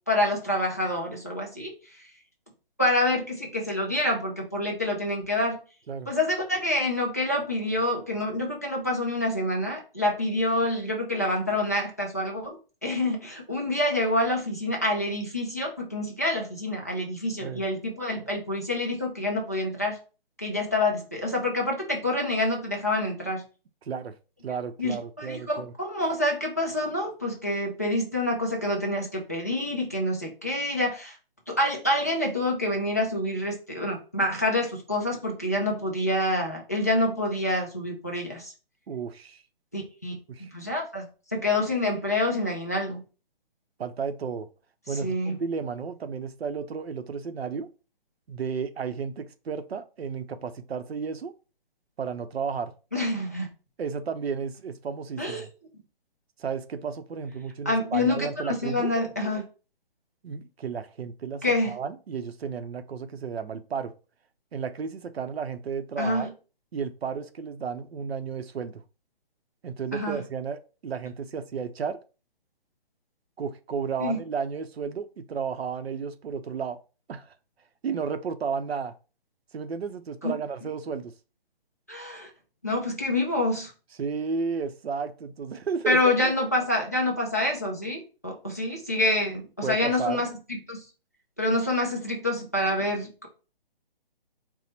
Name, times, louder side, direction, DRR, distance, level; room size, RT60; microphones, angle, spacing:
voice 1, 0.1-1.7 2.8-5.6 6.1-20.0 20.4-23.5 24.8-31.2 31.5-38.5 39.7-40.1 40.5-43.0 45.0-45.4 52.9-53.5 55.2-55.4 57.7-59.4 61.4-61.7 66.0-66.3 69.9-70.2 74.0-74.2 80.2-80.3 81.9-82.3 82.6-83.7 85.9-90.8 91.4-93.3, left 1 dB, 15° left, 0.4 m, -27 dB
voice 2, 23.8-24.1 24.4-25.7 38.9-39.4 40.3-40.5 43.8-44.5 44.9-47.7 48.3-51.3 52.0-52.7 53.8-55.5 56.4-58.9 60.2-63.9 64.5-66.3 66.7-68.8 69.6-72.0 73.4-76.8 77.1-77.3 77.8-78.9 79.5-81.1 84.0-86.3 89.6-90.3, right 6 dB, 80° right, 0.6 m, -33 dB
4.3 x 2.1 x 4.1 m
hypercardioid pair, 165°, 30 cm